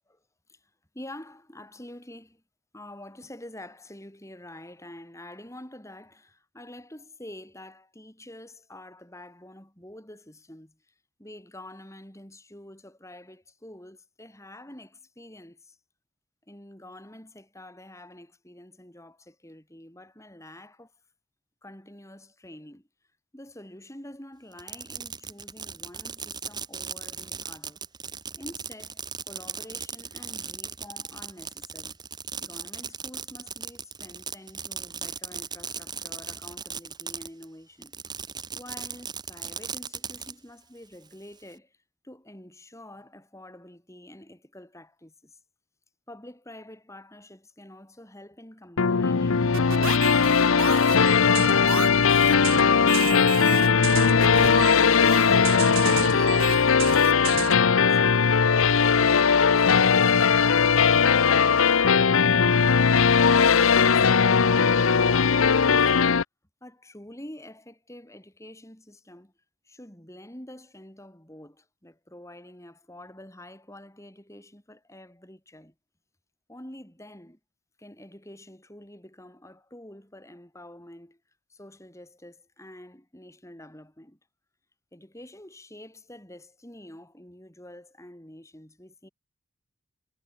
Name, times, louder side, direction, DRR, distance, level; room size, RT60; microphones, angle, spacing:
voice 1, 0.5-2.4 2.7-15.8 16.5-20.9 21.6-22.9 23.3-27.8 28.4-32.0 32.4-38.0 38.5-41.8 42.0-45.4 46.1-51.2 52.2-55.1 55.9-58.3 59.0-65.9 66.6-69.3 69.6-75.7 76.5-77.4 77.8-81.2 81.5-84.2 84.9-89.1, left 1 dB, 15° left, 4.0 m, -47 dB
Fireworks, 24.5-37.5 37.8-40.3, right 6 dB, 20° right, 3.8 m, -37 dB
sound 1, 48.8-66.2, left 6 dB, 80° left, 0.7 m, -19 dB
sound 2, 49.5-57.7, right 8 dB, 80° right, 0.8 m, -33 dB
head